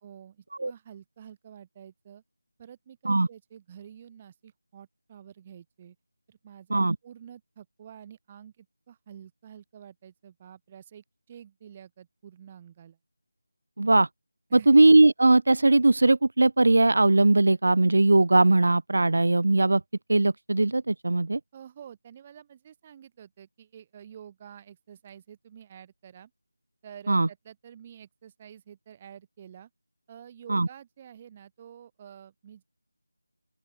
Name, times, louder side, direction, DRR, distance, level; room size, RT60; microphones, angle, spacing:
voice 1, 0.0-2.2 2.6-6.0 6.3-13.0 14.5-14.7 21.5-26.3 26.8-29.7 30.1-32.6, right 9 dB, 20° right, 2.0 m, -49 dB
voice 2, 13.8-14.1 14.5-19.8 20.1-21.4 27.1-27.3 30.5-30.7, right 2 dB, 55° right, 0.4 m, -20 dB
open air
figure-of-eight pair, 165°, 0 cm